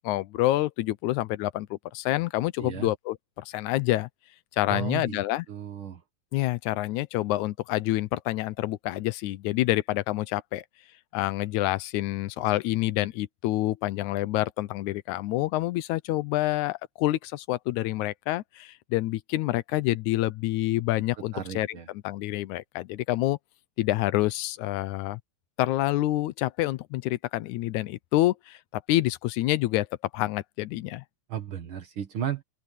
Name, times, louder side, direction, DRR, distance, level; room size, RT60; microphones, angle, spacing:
voice 1, 0.0-4.1 4.6-5.5 6.3-10.7 11.1-23.4 23.8-25.2 25.6-28.6 28.9-29.9 30.1-31.0, left 16 dB, 85° left, 2.1 m, -27 dB
voice 2, 2.6-2.9 4.7-6.0 21.3-21.9 31.3-32.4, right 10 dB, 55° right, 1.8 m, -34 dB
open air
omnidirectional pair, 3.3 m